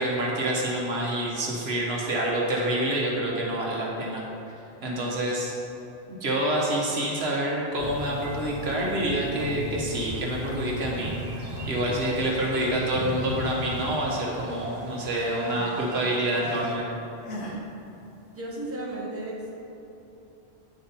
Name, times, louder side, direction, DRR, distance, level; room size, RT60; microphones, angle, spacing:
voice 1, 0.0-4.2 4.8-5.5 6.1-11.1 11.6-16.9, right 1 dB, 70° right, -3 dB, 1.3 m, -27 dB
sound 1, 7.8-14.0, left 5 dB, 50° left, 0.6 m, -38 dB
sound 2, 9.9-16.8, right 2 dB, 45° right, 0.8 m, -39 dB
sound 3, 12.3-12.6 12.9-14.3 14.6-16.8 17.2-17.6, equal, 80° left, 1.2 m, -42 dB
voice 2, 18.3-19.5, right 1 dB, 15° right, -5 dB, 1.2 m, -35 dB
8.6 x 4.3 x 5.3 m, 2.9 s
omnidirectional pair, 1.1 m